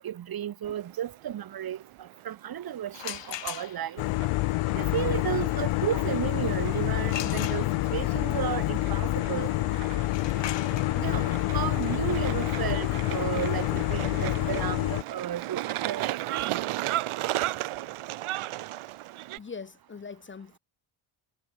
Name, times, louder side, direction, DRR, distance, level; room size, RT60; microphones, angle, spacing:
voice 1, 0.0-4.0 4.7-9.5 11.0-16.6, right 10 dB, 45° right, 1.1 m, -33 dB
sound 1, 0.6-19.4, right 16 dB, 75° right, 1.1 m, -37 dB
sound 2, 2.9-4.1 7.1-8.1 10.0-15.7, left 11 dB, 60° left, 2.3 m, -41 dB
sound 3, 4.0-15.0, left 19 dB, 75° left, 0.6 m, -27 dB
voice 2, 19.4-20.6, left 5 dB, 25° left, 1.0 m, -42 dB
cardioid pair, 170°, 50 cm